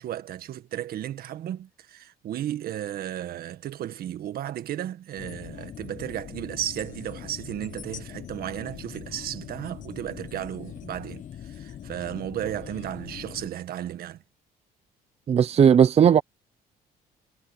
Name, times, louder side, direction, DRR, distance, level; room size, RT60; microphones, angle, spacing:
voice 1, 0.0-14.2, right 11 dB, 65° right, 1.6 m, -34 dB
sound 1, 5.2-13.5, left 10 dB, 50° left, 1.0 m, -42 dB
voice 2, 15.3-16.2, right 8 dB, 40° right, 0.7 m, -17 dB
cardioid pair, 110°, 17 cm